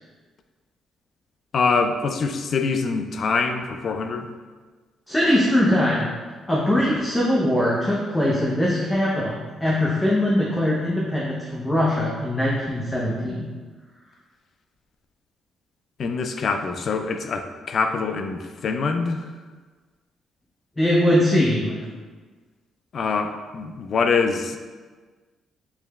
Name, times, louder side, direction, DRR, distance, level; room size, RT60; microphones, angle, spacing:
voice 1, 1.5-4.3 16.0-19.2 22.9-24.6, left 4 dB, 55° left, 6 dB, 0.3 m, -24 dB
voice 2, 5.1-6.1 6.5-13.5 20.8-21.8, left 1 dB, 15° left, -6 dB, 0.7 m, -21 dB
4.7 x 3.1 x 2.3 m, 1.4 s
cardioid pair, 90°, 0 cm